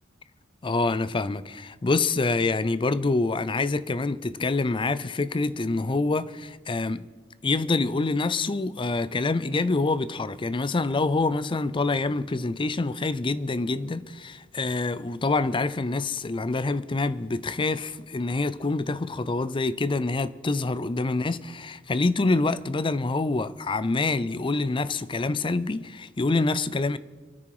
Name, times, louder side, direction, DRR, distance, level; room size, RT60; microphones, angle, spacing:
voice 1, 0.6-7.1 7.4-27.0, left 3 dB, 25° left, 0.5 m, -26 dB
27.0 x 9.7 x 4.9 m
head